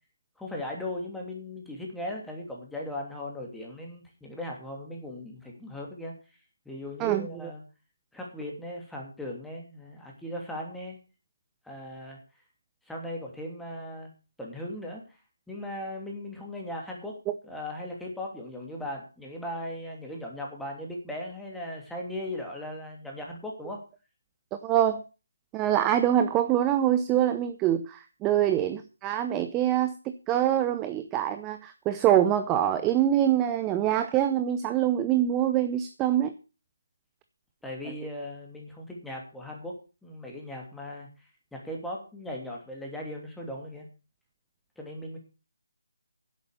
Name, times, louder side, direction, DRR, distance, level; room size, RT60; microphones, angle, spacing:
voice 1, 0.4-6.1 6.6-7.6 8.1-11.0 11.6-12.2 12.9-14.1 14.4-15.0 15.5-23.8 37.6-43.9 44.8-45.2, left 1 dB, ahead, -1 dB, 2.8 m, -38 dB
voice 2, 7.0-7.5 24.6-25.0 25.5-29.9 30.3-36.3, right 11 dB, 15° right, 10 dB, 0.6 m, -25 dB
10.5 x 8.2 x 6.7 m, 0.33 s
figure-of-eight pair, 150°, 0 cm